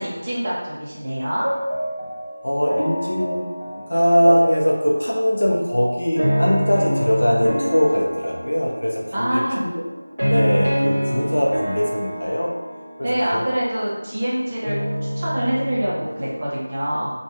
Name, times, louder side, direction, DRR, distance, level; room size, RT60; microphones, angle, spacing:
voice 1, 0.0-1.4 9.1-9.6 13.0-17.1, equal, 25° right, -7 dB, 0.6 m, -25 dB
sound 1, 1.4-16.4, equal, 90° right, 0.6 m, -27 dB
voice 2, 2.4-3.5 3.8-9.8 10.2-12.5 13.0-13.4, equal, 70° left, -2 dB, 0.6 m, -21 dB
2.3 x 2.2 x 3.0 m, 1.1 s
figure-of-eight pair, 175°, 0 cm